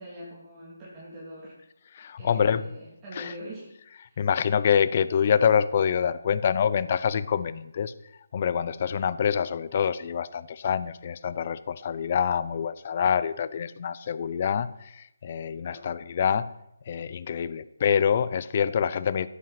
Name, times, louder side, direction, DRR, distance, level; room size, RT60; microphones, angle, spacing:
voice 1, 0.0-1.5 2.2-4.2 15.6-15.9, equal, 15° right, -7 dB, 3.0 m, -43 dB
voice 2, 1.9-2.6 3.1-3.3 4.2-7.9 8.3-16.5 16.9-19.3, left 7 dB, 40° left, 15 dB, 0.7 m, -26 dB
15.0 x 8.4 x 5.9 m, 0.83 s
figure-of-eight pair, 160°, 0 cm